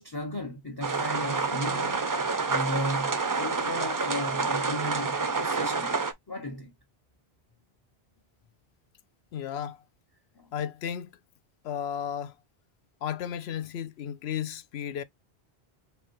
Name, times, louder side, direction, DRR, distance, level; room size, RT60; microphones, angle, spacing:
voice 1, 0.0-2.1 2.5-6.0 6.3-6.7 10.4-10.5, equal, 25° left, 0.7 m, -35 dB
sound 1, 0.8-6.1, right 4 dB, 35° right, 0.3 m, -28 dB
voice 2, 9.3-9.8 10.5-11.1 11.6-12.3 13.0-15.0, left 9 dB, 85° left, 0.8 m, -34 dB
4.9 x 3.0 x 3.0 m
omnidirectional pair, 1.1 m